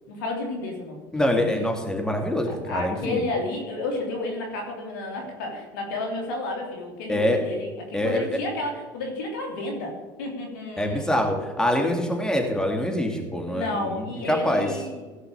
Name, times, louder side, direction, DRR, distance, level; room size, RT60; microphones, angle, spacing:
voice 1, 0.1-1.8 2.4-11.3 13.5-15.1, left 2 dB, 85° left, 1 dB, 3.1 m, -32 dB
voice 2, 1.1-3.2 7.1-7.4 7.9-8.3 10.8-14.7, left 1 dB, 5° left, 2 dB, 2.7 m, -25 dB
16.5 x 5.7 x 7.2 m, 1.3 s
supercardioid pair, 85°, 10 cm